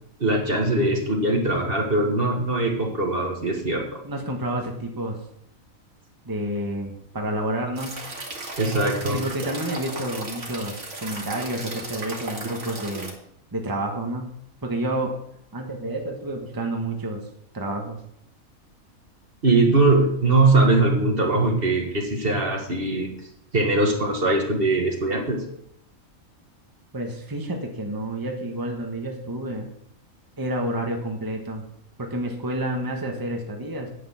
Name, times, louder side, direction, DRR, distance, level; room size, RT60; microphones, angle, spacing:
voice 1, 0.2-4.0 8.6-9.2 19.4-23.1 23.5-25.4, right 2 dB, 45° right, 1 dB, 1.8 m, -21 dB
voice 2, 4.0-5.2 6.2-8.1 9.1-13.1 13.5-15.2 15.5-17.3 17.5-18.0 26.9-29.7 30.4-31.7 32.0-33.9, right 1 dB, 15° right, 1 dB, 1.3 m, -29 dB
sound 1, 7.8-13.1, right 2 dB, 60° right, 2.3 m, -35 dB
9.8 x 8.8 x 5.8 m, 0.75 s
omnidirectional pair, 1.4 m